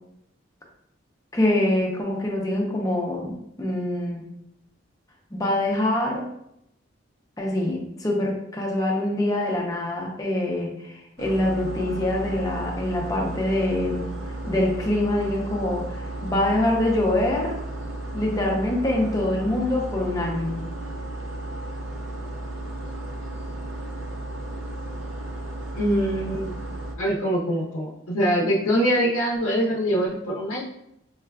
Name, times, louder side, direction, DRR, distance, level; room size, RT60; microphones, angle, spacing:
voice 1, 1.3-4.3 5.3-6.3 7.4-14.1 14.5-17.6 18.1-20.6, left 1 dB, 15° left, -1 dB, 0.5 m, -25 dB
sound 1, 11.2-26.9, right 1 dB, 70° right, 0.5 m, -34 dB
voice 2, 25.7-26.5 27.0-30.6, equal, 90° left, -4 dB, 0.6 m, -23 dB
4.7 x 2.2 x 2.2 m, 0.79 s
head